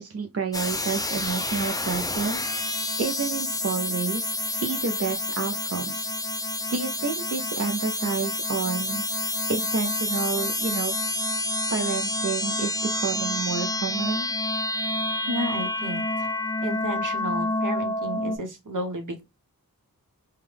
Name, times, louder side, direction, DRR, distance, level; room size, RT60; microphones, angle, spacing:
voice 1, 0.0-2.5 3.0-6.1 6.7-10.9 11.7-14.3, right 5 dB, 45° right, 0.5 m, -30 dB
sound 1, 0.5-18.4, left 1 dB, 10° left, 0.4 m, -28 dB
voice 2, 15.3-16.3 16.6-19.2, equal, 60° right, 1.1 m, -32 dB
3.5 x 2.3 x 3.2 m
wide cardioid pair, 65°, 35 cm